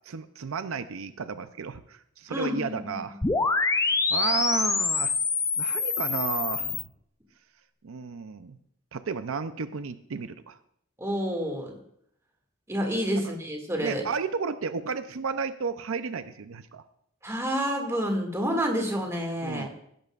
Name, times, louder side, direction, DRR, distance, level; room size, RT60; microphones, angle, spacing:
voice 1, 0.0-3.2 3.8-5.2 5.6-6.8 7.8-8.6 8.9-10.6 13.2-13.3 13.8-16.8 19.4-19.7, right 5 dB, 85° right, 11 dB, 0.6 m, -33 dB
voice 2, 2.3-3.0 3.3-3.4 11.0-11.8 12.7-14.0 17.2-19.7, equal, 15° right, 1 dB, 2.2 m, -29 dB
sound 1, 3.2-6.8, left 4 dB, 15° left, 0.5 m, -25 dB
15.5 x 12.5 x 2.5 m, 0.71 s
head